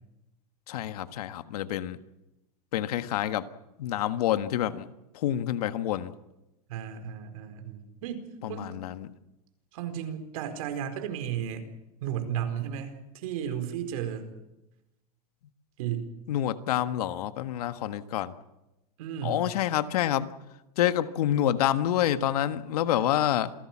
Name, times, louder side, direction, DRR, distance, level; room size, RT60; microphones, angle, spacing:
voice 1, 0.7-2.0 2.7-3.5 3.8-4.9 5.1-6.1 8.4-9.1 16.3-18.3 19.2-20.3 20.8-23.5, left 12 dB, 90° left, 11 dB, 1.6 m, -27 dB
voice 2, 6.7-8.2 8.5-8.7 9.7-11.6 12.0-14.3 15.8-16.1 19.0-19.5, right 9 dB, 70° right, 7 dB, 4.6 m, -34 dB
27.5 x 18.0 x 7.4 m, 0.94 s
supercardioid pair, 165°, 19 cm